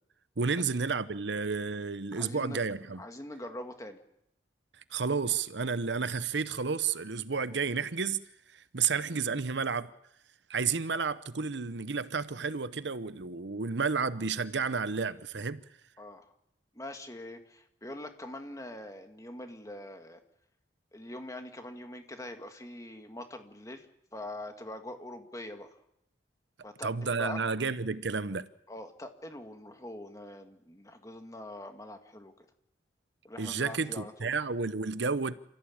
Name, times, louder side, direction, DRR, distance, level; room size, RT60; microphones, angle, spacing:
voice 1, 0.4-3.0 4.9-8.3 8.5-9.9 10.5-15.6 26.8-28.5 33.4-35.4, right 5 dB, 80° right, 0.9 m, -31 dB
voice 2, 2.1-2.6 3.0-4.0 16.0-16.3 16.7-20.2 20.9-23.9 24.1-25.7 26.6-27.4 28.7-32.5 33.2-34.3, left 1 dB, 20° left, 2.1 m, -43 dB
28.0 x 15.0 x 8.8 m
head